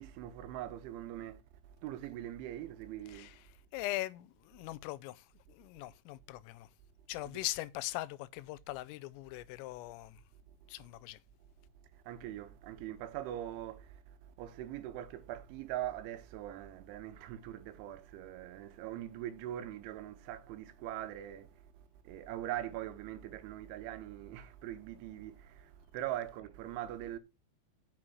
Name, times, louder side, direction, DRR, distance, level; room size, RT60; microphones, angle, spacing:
voice 1, 0.0-3.3 7.3-7.4 11.9-27.2, right 12 dB, 80° right, 3.0 m, -42 dB
voice 2, 3.7-6.7 7.1-10.2 10.7-11.2, left 17 dB, 90° left, 3.3 m, -41 dB
7.9 x 6.1 x 6.0 m
omnidirectional pair, 5.8 m